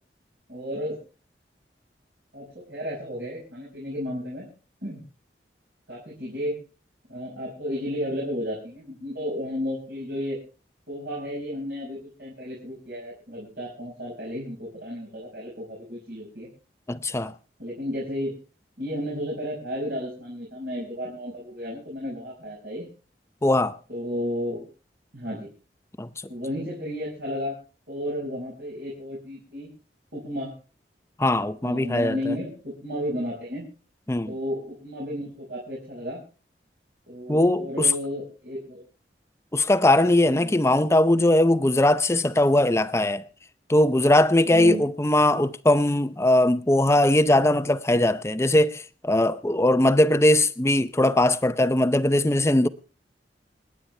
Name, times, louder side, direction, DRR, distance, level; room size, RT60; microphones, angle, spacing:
voice 1, 0.5-1.0 2.3-4.5 4.8-5.0 5.9-6.6 7.1-10.4 10.9-16.5 17.6-18.3 18.8-22.9 23.9-24.7 25.1-25.5 26.3-27.6 27.9-29.7 30.1-30.5 31.6-33.7 34.3-36.2 37.1-38.8 40.4-40.5 44.5-44.8, equal, 70° right, 5.4 m, -33 dB
voice 2, 16.9-17.3 23.4-23.8 26.0-26.1 31.2-32.3 34.1-34.3 37.3-37.9 39.5-43.2 43.7-52.7, left 1 dB, 15° left, 0.6 m, -20 dB
28.0 x 9.8 x 3.3 m
head